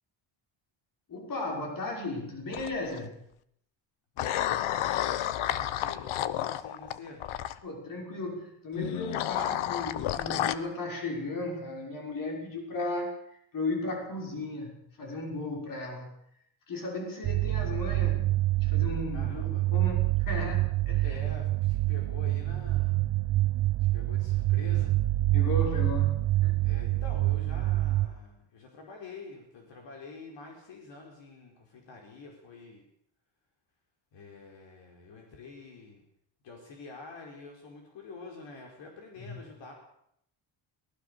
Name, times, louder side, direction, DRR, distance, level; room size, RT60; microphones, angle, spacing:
voice 1, 1.1-3.2 7.6-13.1 13.5-16.1 16.7-21.2 25.3-26.7 39.2-39.4, left 2 dB, 45° left, 1 dB, 6.1 m, -36 dB
sound 1, 2.5-3.0 4.2-7.6 8.8-10.5, left 12 dB, 90° left, 1.1 m, -31 dB
voice 2, 4.1-7.3 19.1-19.7 21.0-23.1 23.9-25.0 26.6-32.8 34.1-36.0 36.4-39.7, left 3 dB, 65° left, 1 dB, 4.9 m, -47 dB
sound 2, 17.2-28.1, right 17 dB, 65° right, 1.1 m, -26 dB
23.0 x 18.5 x 6.8 m, 0.72 s
cardioid pair, 160°, 47 cm